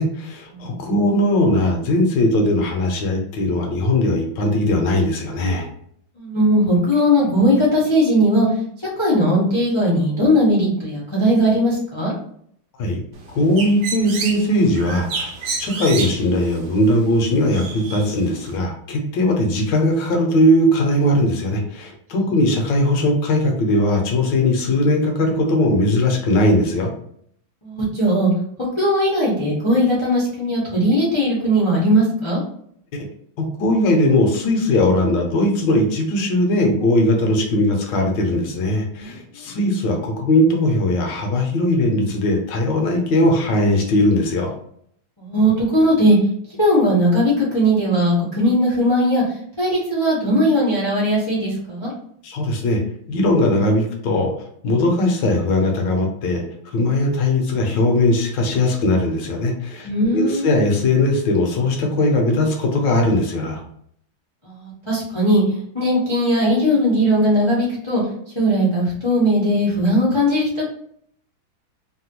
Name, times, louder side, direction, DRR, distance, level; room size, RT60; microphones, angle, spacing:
voice 1, 0.0-5.7 12.8-13.0 13.3-26.9 33.4-44.5 52.2-52.8 53.1-54.3 54.6-63.6, left 1 dB, 70° left, 2 dB, 1.3 m, -19 dB
voice 2, 0.5-0.8 6.2-8.5 9.0-12.1 27.6-28.3 28.8-32.4 39.0-39.5 45.2-46.2 46.6-49.2 49.6-51.9 59.8-60.5 64.4-65.4 65.7-68.0 68.3-70.6, equal, 45° left, -7 dB, 0.3 m, -18 dB
Bird, 13.1-18.6, right 4 dB, 70° right, 1.0 m, -31 dB
3.3 x 2.2 x 2.9 m, 0.66 s
omnidirectional pair, 2.2 m